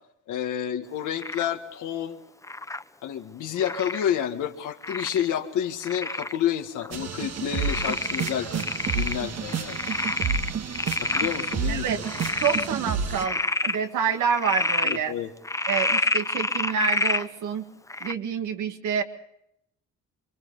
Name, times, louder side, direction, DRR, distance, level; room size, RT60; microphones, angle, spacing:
voice 1, 0.3-2.2 3.0-8.7 8.9-9.8 11.0-11.8 14.8-15.3, left 9 dB, 80° left, 6 dB, 1.8 m, -29 dB
Frog, 1.2-1.5 2.4-2.8 3.6-4.0 4.8-5.3 5.8-6.4 6.8-6.9 7.5-9.2 9.5-11.5 12.0-12.7 13.1-13.8 14.3-15.0 15.4-17.2 17.9-18.1, left 2 dB, 10° left, 0.7 m, -28 dB
sound 1, 6.9-13.2, right 6 dB, 60° right, 1.6 m, -30 dB
voice 2, 11.7-12.0 12.4-15.1 15.6-17.6 18.0-19.0, right 6 dB, 80° right, 6 dB, 2.0 m, -27 dB
27.5 x 23.5 x 4.1 m, 0.76 s
cardioid pair, 90°, 30 cm